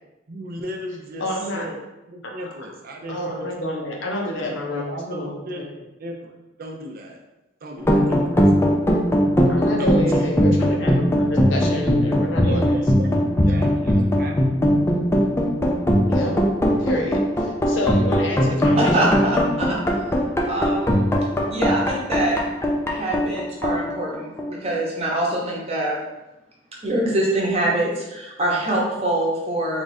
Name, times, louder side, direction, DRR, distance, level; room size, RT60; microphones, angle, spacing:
voice 1, 0.3-1.8 2.1-4.0 4.4-5.7 6.0-7.2 7.6-8.4 9.8-10.5 12.4-14.4, right 1 dB, 50° right, 1 dB, 0.5 m, -36 dB
voice 2, 1.2-1.7 3.1-5.3 9.5-12.8 16.1-16.3 16.8-17.2 17.7-19.3, left 1 dB, 70° left, 0 dB, 0.8 m, -28 dB
sound 1, 7.8-24.7, equal, 15° left, 0.4 m, -20 dB
voice 3, 18.7-19.8 20.5-21.1 21.5-22.4 22.9-26.0 26.8-29.8, right 1 dB, 30° right, -4 dB, 0.9 m, -24 dB
3.6 x 2.4 x 4.0 m, 0.98 s
head